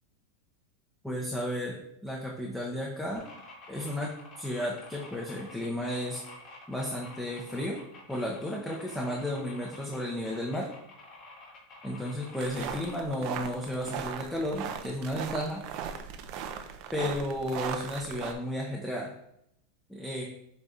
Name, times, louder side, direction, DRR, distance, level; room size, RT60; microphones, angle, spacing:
voice 1, 1.0-3.2 3.7-6.2 6.7-7.8 8.1-10.7 11.8-15.6 16.9-19.1 19.9-20.3, left 1 dB, 5° left, -2 dB, 0.9 m, -33 dB
sound 1, 3.1-13.0, left 3 dB, 35° left, 2.2 m, -49 dB
sound 2, 12.4-18.3, right 8 dB, 45° right, 0.7 m, -38 dB
8.5 x 3.3 x 4.2 m, 0.75 s
supercardioid pair, 150°, 0 cm